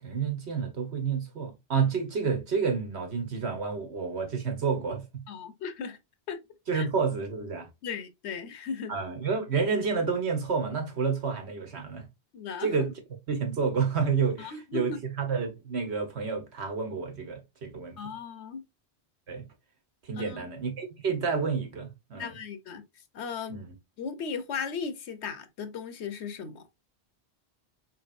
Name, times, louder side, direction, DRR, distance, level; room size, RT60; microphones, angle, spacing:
voice 1, 0.0-5.2 6.7-7.7 8.9-12.1 12.6-12.9 13.3-18.1 19.3-19.4 20.0-22.3 23.5-23.7, right 5 dB, 70° right, 1.3 m, -29 dB
voice 2, 5.3-6.0 6.3-6.4 6.7-6.9 7.8-9.0 12.3-12.7 14.4-15.0 18.0-18.6 20.1-20.5 22.2-22.8 23.1-23.6 24.0-26.6, left 6 dB, 75° left, 1.0 m, -36 dB
4.5 x 3.4 x 2.5 m
omnidirectional pair, 1.1 m